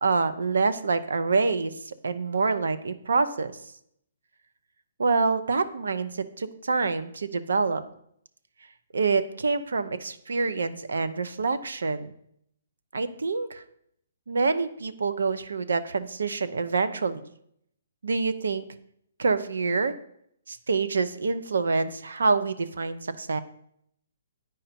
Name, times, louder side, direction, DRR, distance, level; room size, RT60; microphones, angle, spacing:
voice 1, 0.0-3.6 5.0-7.8 8.9-12.1 12.9-13.6 14.3-17.2 18.0-18.6 19.2-19.9 20.5-23.4, right 4 dB, 85° right, 12 dB, 0.6 m, -26 dB
9.1 x 5.0 x 4.3 m, 0.71 s
hypercardioid pair, 150°, 0 cm